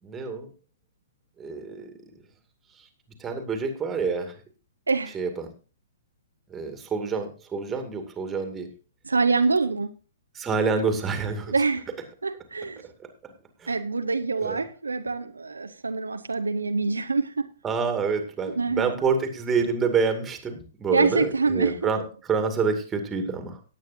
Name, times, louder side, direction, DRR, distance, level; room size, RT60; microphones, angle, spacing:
voice 1, 0.0-0.5 1.4-2.1 2.7-2.9 3.2-4.4 5.1-5.5 6.5-8.7 10.3-11.5 12.8-13.3 13.6-13.7 14.4-14.6 17.6-23.6, right 5 dB, 15° right, 6 dB, 2.2 m, -27 dB
voice 2, 9.0-9.9 11.5-11.9 12.2-12.9 13.7-17.5 18.6-18.9 20.9-21.9, right 4 dB, 75° right, 8 dB, 0.8 m, -25 dB
18.0 x 8.7 x 2.7 m, 0.35 s
figure-of-eight pair, 115°, 0 cm